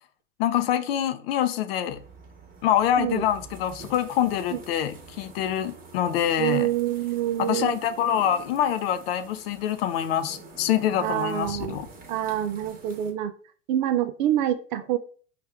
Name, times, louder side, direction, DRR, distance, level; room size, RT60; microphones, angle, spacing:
voice 1, 0.4-2.0 2.6-6.7 7.4-11.9, left 10 dB, 50° left, 0.6 m, -25 dB
sound 1, 1.9-13.1, right 3 dB, 20° right, 1.1 m, -46 dB
voice 2, 6.4-7.8 11.0-11.8 12.1-13.3 13.7-15.0, right 12 dB, 40° right, 0.4 m, -26 dB
5.2 x 2.5 x 3.4 m
figure-of-eight pair, 95°, 39 cm